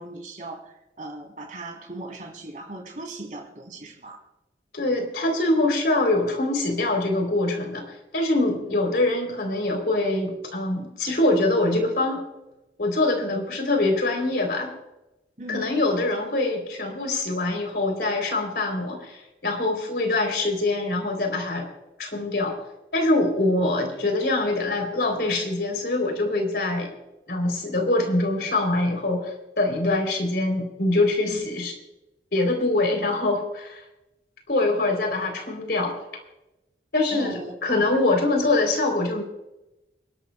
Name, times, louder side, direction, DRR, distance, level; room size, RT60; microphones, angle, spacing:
voice 1, 0.0-4.2 15.4-15.7 31.2-31.4 37.1-37.5, right 2 dB, 45° right, 2 dB, 3.3 m, -38 dB
voice 2, 4.7-12.2 12.8-14.7 15.5-21.7 22.0-22.6 22.9-26.9 27.3-31.7 32.3-33.8 34.5-36.0 36.9-39.2, left 2 dB, 60° left, 3 dB, 3.4 m, -24 dB
29.0 x 12.5 x 2.2 m, 0.97 s
head